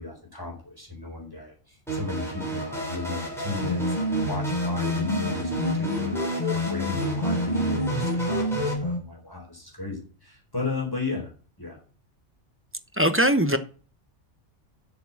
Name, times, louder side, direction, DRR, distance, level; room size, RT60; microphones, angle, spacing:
voice 1, 0.0-11.8, left 4 dB, 15° left, 4.4 m, -35 dB
sound 1, 1.9-8.7, right 2 dB, ahead, 3.9 m, -33 dB
sound 2, 3.6-9.0, left 1 dB, 40° left, 2.2 m, -28 dB
voice 2, 13.0-13.6, equal, 15° right, 0.7 m, -20 dB
8.1 x 6.9 x 7.2 m
omnidirectional pair, 1.2 m